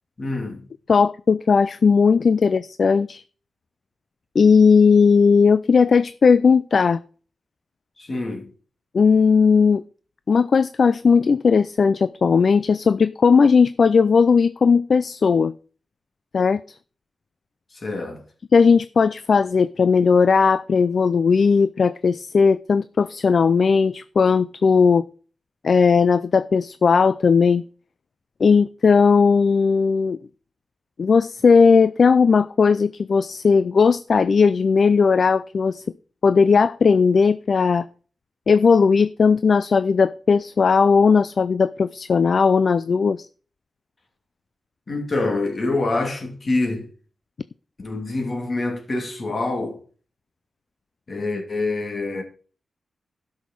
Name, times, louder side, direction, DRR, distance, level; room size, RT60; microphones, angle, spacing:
voice 1, 0.2-0.6 8.0-8.5 17.7-18.2 44.9-46.9 47.8-49.8 51.1-52.2, left 2 dB, 40° left, 2.7 m, -26 dB
voice 2, 0.9-3.2 4.4-7.0 8.9-9.8 10.3-15.5 16.3-16.8 18.5-25.0 25.6-27.6 28.4-30.2 31.0-35.8 36.2-37.9 38.5-43.3, left 5 dB, 55° left, 0.3 m, -17 dB
12.0 x 6.4 x 4.6 m
wide cardioid pair, 110°, 0 cm